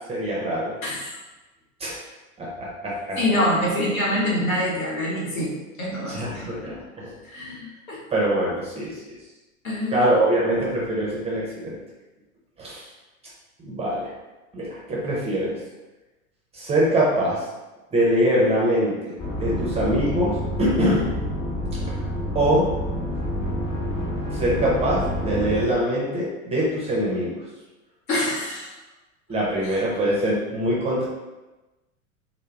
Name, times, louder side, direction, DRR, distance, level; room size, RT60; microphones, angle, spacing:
voice 1, 0.1-0.7 1.8-2.0 2.4-3.2 6.1-6.7 8.1-8.9 9.9-11.8 12.6-12.9 13.6-14.1 14.5-15.6 16.5-17.4 17.9-20.3 20.6-21.1 22.3-22.6 24.3-27.4 29.3-31.1, right 1 dB, 15° right, -5 dB, 0.6 m, -23 dB
voice 2, 0.8-1.2 3.2-5.5 5.8-6.8 7.3-8.0 9.6-10.5 28.1-28.7, left 1 dB, 80° left, -6 dB, 0.9 m, -26 dB
sound 1, 19.2-25.6, equal, 40° left, 0.9 m, -28 dB
2.2 x 2.1 x 3.2 m, 1.1 s
hypercardioid pair, 90°, 41 cm